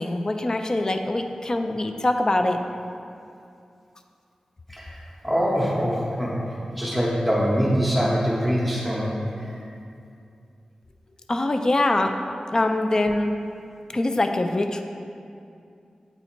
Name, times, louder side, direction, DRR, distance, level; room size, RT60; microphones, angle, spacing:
voice 1, 0.0-2.6 11.3-12.1 12.5-13.3 13.9-14.8, left 2 dB, 30° left, 5 dB, 0.4 m, -23 dB
voice 2, 5.2-6.4 6.7-9.6, equal, ahead, -6 dB, 0.8 m, -24 dB
8.0 x 2.8 x 4.3 m, 2.5 s
wide cardioid pair, 90°, 2 cm